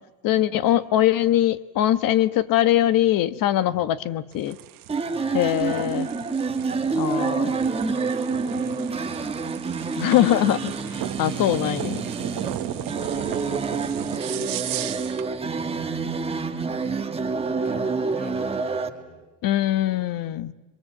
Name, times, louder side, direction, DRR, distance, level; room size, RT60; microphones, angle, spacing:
voice 1, 0.2-4.6 5.3-6.1 7.0-7.4 10.0-11.9 19.4-20.5, left 12 dB, 45° left, 14 dB, 1.2 m, -22 dB
sound 1, 4.3-15.3, right 15 dB, 45° right, 1.3 m, -36 dB
sound 2, 4.9-18.9, right 4 dB, 10° right, 1.3 m, -28 dB
voice 2, 5.1-6.1 6.5-9.5 11.1-16.1 17.5-19.3, equal, 15° left, 3 dB, 7.1 m, -44 dB
30.0 x 23.0 x 7.7 m, 1.1 s
cardioid pair, 140°, 48 cm